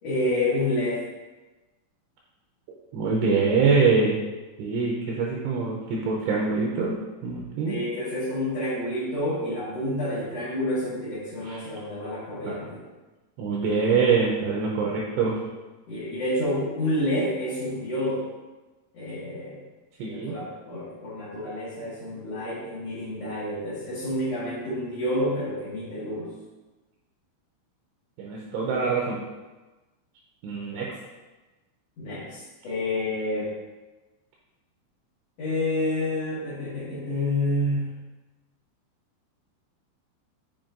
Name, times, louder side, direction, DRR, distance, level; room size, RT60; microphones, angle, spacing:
voice 1, 0.0-1.0 7.7-12.8 15.9-18.2 18.9-19.6 20.1-26.3 30.7-30.8 32.0-33.5 35.4-37.9, left 1 dB, 75° left, -10 dB, 1.4 m, -29 dB
voice 2, 2.9-4.2 4.6-7.0 7.2-7.8 11.4-11.6 12.5-12.6 13.4-15.4 20.0-20.4 28.2-29.2 30.4-30.9, right 4 dB, 80° right, -3 dB, 2.6 m, -24 dB
7.3 x 5.2 x 2.6 m, 1.2 s
omnidirectional pair, 5.5 m